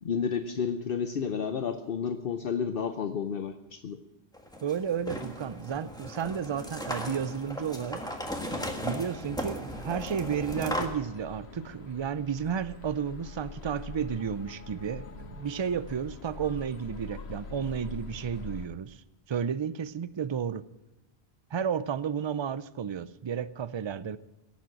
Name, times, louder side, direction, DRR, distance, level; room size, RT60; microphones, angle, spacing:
voice 1, 0.0-4.0, left 6 dB, 65° left, 7 dB, 0.9 m, -31 dB
sound 1, 4.3-10.9, equal, 5° left, 1.5 m, -36 dB
voice 2, 4.6-8.0 8.8-20.7 21.5-24.2, right 7 dB, 40° right, 16 dB, 0.4 m, -32 dB
sound 2, 9.7-18.7, left 4 dB, 90° left, 1.3 m, -44 dB
17.0 x 7.3 x 8.6 m, 0.95 s
omnidirectional pair, 1.1 m